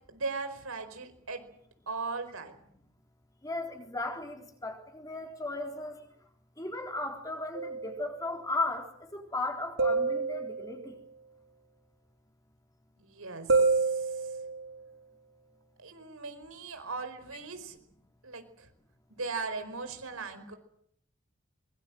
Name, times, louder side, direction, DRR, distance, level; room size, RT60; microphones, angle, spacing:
voice 1, 0.1-1.4 1.9-2.6 13.0-14.4 15.8-17.8 18.2-18.7 19.1-20.6, right 4 dB, 85° right, 8 dB, 4.8 m, -38 dB
voice 2, 3.4-6.0 6.6-11.0, left 2 dB, 15° left, 3 dB, 4.0 m, -36 dB
sound 1, 7.5-8.2 9.8-10.9 13.5-14.8, right 4 dB, 65° right, 7.7 m, -28 dB
24.0 x 23.0 x 7.8 m, 0.69 s
head